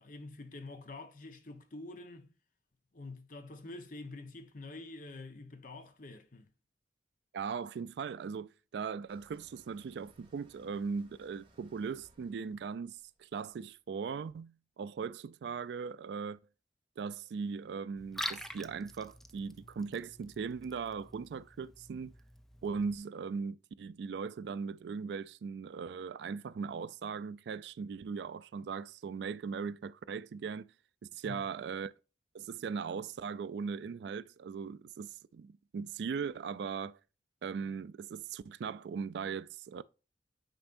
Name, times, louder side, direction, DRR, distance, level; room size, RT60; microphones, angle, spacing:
voice 1, 0.0-2.3 2.9-6.5 31.2-31.4, left 2 dB, 50° left, 1.0 m, -47 dB
voice 2, 7.3-16.4 17.0-22.1 22.6-30.7 31.1-31.9 32.3-37.0 37.4-39.8, right 5 dB, 70° right, 0.3 m, -39 dB
sound 1, 9.1-14.0, right 1 dB, 30° right, 1.7 m, -65 dB
Liquid, 18.0-23.0, equal, ahead, 0.4 m, -46 dB
9.0 x 4.4 x 2.6 m
head